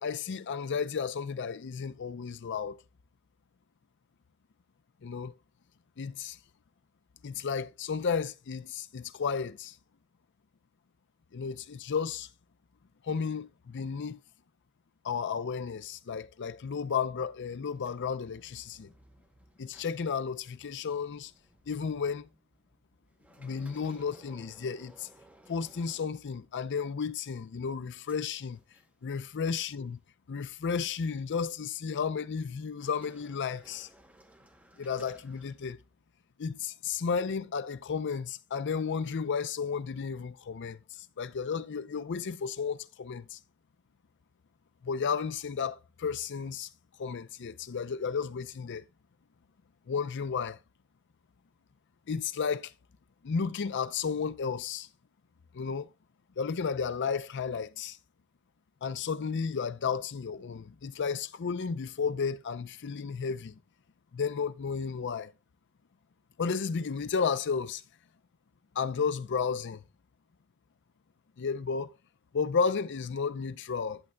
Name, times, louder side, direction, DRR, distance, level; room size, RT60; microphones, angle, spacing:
voice 1, 0.0-2.8 5.0-5.3 6.0-6.4 7.2-9.8 11.3-12.3 13.0-14.2 15.0-18.9 19.6-21.3 21.7-22.3 23.4-25.1 25.5-28.6 29.0-30.0 30.3-33.9 34.8-35.8 36.4-40.8 41.2-43.4 44.8-46.7 47.0-48.8 49.9-50.6 52.1-52.7 53.2-54.9 55.5-55.9 56.4-58.0 58.8-63.6 64.1-65.3 66.4-67.8 68.8-69.8 71.4-71.9 72.3-74.0, left 6 dB, 55° left, 0.5 m, -33 dB
sound 1, 17.7-26.7 27.2-29.3 29.6-29.9 30.6-31.5 32.7-36.0, right 1 dB, 5° right, 0.9 m, -60 dB
11.0 x 7.6 x 2.2 m
head